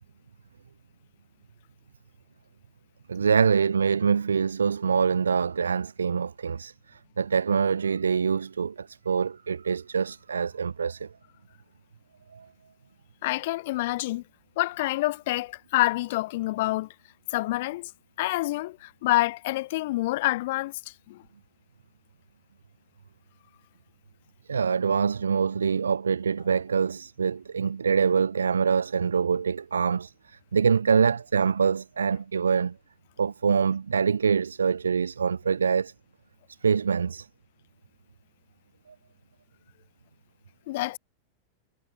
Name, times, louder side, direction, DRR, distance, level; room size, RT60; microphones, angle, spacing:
voice 1, 3.1-6.7 7.2-11.1 12.3-12.4 24.5-30.1 30.5-32.7 33.2-35.9 36.6-37.3, right 6 dB, 70° right, 1.1 m, -25 dB
voice 2, 13.2-14.2 14.6-16.9 17.3-17.9 18.2-20.7 21.1-21.2 40.7-41.0, left 18 dB, 50° left, 1.5 m, -27 dB
figure-of-eight pair, 90°, 0 cm